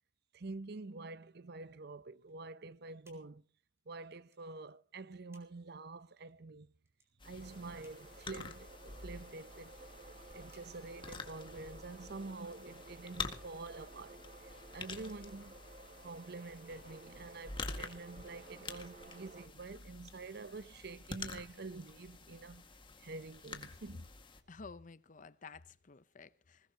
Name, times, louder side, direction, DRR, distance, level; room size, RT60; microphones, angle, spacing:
voice 1, 0.3-3.4 3.9-6.7 7.2-9.8 10.3-22.7 23.0-24.1, right 3 dB, 60° right, 0.7 m, -48 dB
sound 1, 2.2-13.5, right 1 dB, 15° right, 5.4 m, -74 dB
sound 2, 7.2-24.4, left 4 dB, 30° left, 1.9 m, -48 dB
sound 3, 7.4-19.5, right 3 dB, 45° right, 1.8 m, -55 dB
voice 2, 24.5-26.7, left 4 dB, 45° left, 0.8 m, -52 dB
21.0 x 20.5 x 2.9 m
head